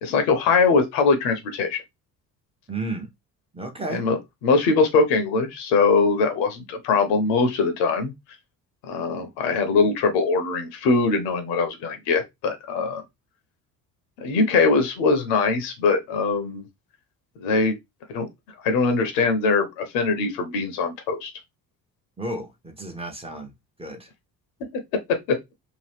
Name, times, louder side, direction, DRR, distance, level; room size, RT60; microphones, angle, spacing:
voice 1, 0.0-1.8 3.9-8.1 8.8-13.0 14.2-16.6 17.4-17.8 18.1-18.3 18.6-21.3 25.3-25.4, left 4 dB, 60° left, 0.9 m, -22 dB
voice 2, 2.7-3.1 3.5-4.0 22.2-23.5 23.8-24.1, right 2 dB, 10° right, 0.8 m, -32 dB
2.8 x 2.4 x 3.3 m
figure-of-eight pair, 55°, 48 cm